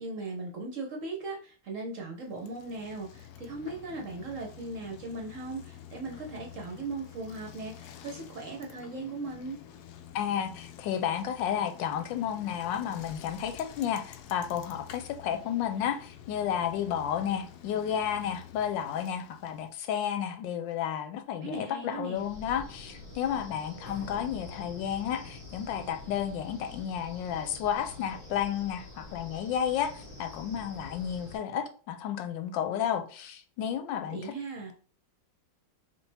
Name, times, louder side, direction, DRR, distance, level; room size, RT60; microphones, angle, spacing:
voice 1, 0.0-9.6 21.4-22.2 34.1-34.7, right 3 dB, 60° right, 0.9 m, -38 dB
Bicycle, 2.2-19.8, left 9 dB, 70° left, 1.0 m, -49 dB
voice 2, 10.1-34.3, left 9 dB, 85° left, 1.3 m, -32 dB
Wind, 22.1-31.4, left 3 dB, 10° left, 2.1 m, -46 dB
5.4 x 2.6 x 3.3 m
omnidirectional pair, 2.0 m